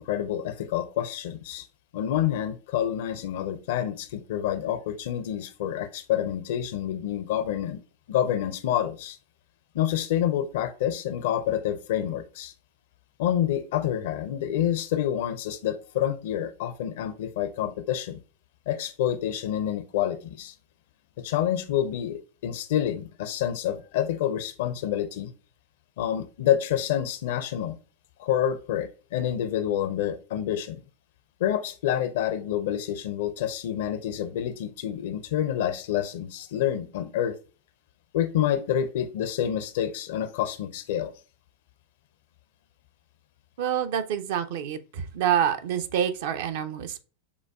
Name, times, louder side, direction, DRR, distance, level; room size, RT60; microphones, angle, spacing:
voice 1, 0.0-1.7 1.9-7.8 8.1-9.2 9.7-12.5 13.2-18.2 18.7-20.5 21.2-25.3 26.0-27.8 28.2-30.8 31.4-37.4 38.1-41.1, left 10 dB, 55° left, 0.5 m, -28 dB
voice 2, 43.6-47.0, right 9 dB, 50° right, 0.5 m, -27 dB
6.8 x 2.3 x 2.3 m
figure-of-eight pair, 90°, 0 cm